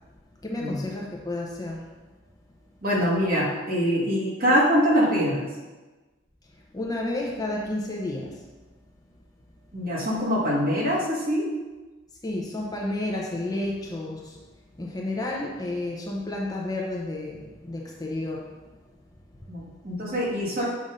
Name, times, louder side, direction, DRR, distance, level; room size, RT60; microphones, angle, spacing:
voice 1, 0.4-1.9 6.5-8.5 12.2-14.5 14.8-18.6 19.3-19.5, left 2 dB, 20° left, -2 dB, 0.5 m, -31 dB
voice 2, 2.8-5.5 9.7-11.5 19.5-20.7, equal, 45° right, -5 dB, 1.4 m, -24 dB
7.4 x 2.6 x 5.3 m, 1.2 s
head